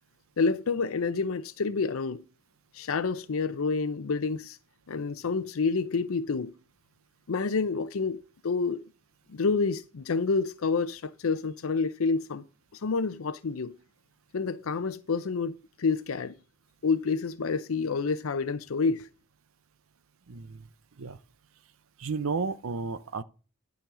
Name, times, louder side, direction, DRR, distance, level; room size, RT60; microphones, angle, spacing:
voice 1, 0.4-2.2 2.7-4.6 4.9-6.5 7.3-8.8 9.3-12.4 12.7-13.8 14.3-16.4 16.8-19.1, left 4 dB, 80° left, 0.6 m, -28 dB
voice 2, 20.3-20.7 21.0-21.2 22.0-23.2, right 4 dB, 75° right, 0.7 m, -32 dB
12.0 x 5.2 x 6.1 m
head